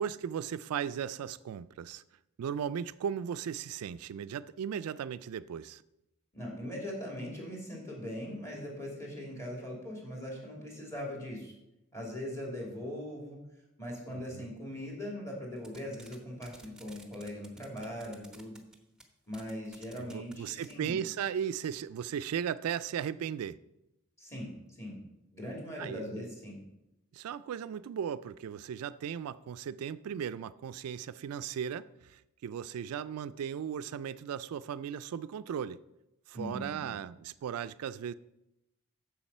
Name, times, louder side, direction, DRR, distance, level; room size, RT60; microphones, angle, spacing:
voice 1, 0.0-2.0 2.4-5.8 14.1-14.5 20.0-23.6 25.8-26.3 27.1-35.8 36.3-38.1, right 8 dB, 80° right, 0.3 m, -37 dB
voice 2, 6.3-11.5 11.9-13.4 13.8-18.6 19.3-21.0 24.2-25.0 25.3-26.6 36.3-36.9, left 1 dB, 15° left, 2.7 m, -40 dB
sound 1, 15.6-16.1 16.4-18.7 19.0-19.1 19.3-20.7, right 2 dB, 5° right, 0.9 m, -52 dB
7.2 x 7.2 x 5.4 m
head